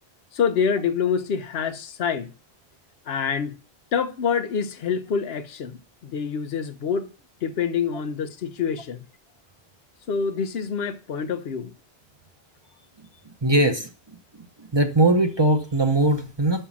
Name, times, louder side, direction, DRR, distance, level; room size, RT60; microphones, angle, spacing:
voice 1, 0.3-2.3 3.1-3.6 3.9-5.8 6.0-7.1 7.4-9.0 10.1-11.7, left 6 dB, 75° left, 0.9 m, -26 dB
voice 2, 13.4-13.9 14.6-16.7, right 2 dB, 30° right, 0.8 m, -20 dB
6.2 x 5.5 x 7.0 m
omnidirectional pair, 1.1 m